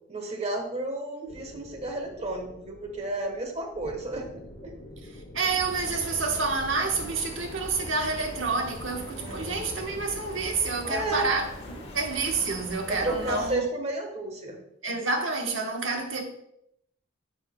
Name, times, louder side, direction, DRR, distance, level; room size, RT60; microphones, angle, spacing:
voice 1, 0.1-4.2 4.6-4.7 9.2-9.8 10.8-11.3 12.9-14.6, right 2 dB, 35° right, 1.2 m, -32 dB
sound 1, 1.3-10.5, left 1 dB, 65° left, 1.2 m, -46 dB
voice 2, 5.3-13.7 14.8-16.2, right 4 dB, 80° right, 1.2 m, -28 dB
sound 2, 5.4-13.5, left 1 dB, 30° left, 1.2 m, -41 dB
9.7 x 6.1 x 2.2 m
head